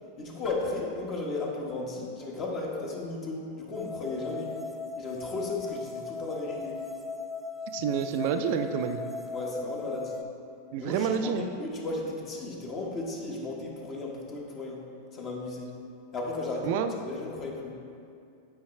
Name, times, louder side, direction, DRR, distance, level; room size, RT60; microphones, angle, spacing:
voice 1, 0.2-4.6 5.0-6.8 9.3-10.2 10.8-14.8 15.1-15.7 16.1-17.8, left 2 dB, 40° left, -2 dB, 1.3 m, -35 dB
sound 1, 3.7-10.2, left 4 dB, 10° left, 0.4 m, -38 dB
voice 2, 7.7-9.1 10.7-11.5 16.6-16.9, right 7 dB, 60° right, 7 dB, 0.4 m, -28 dB
8.1 x 4.7 x 3.2 m, 2.4 s
hypercardioid pair, 95°, 0 cm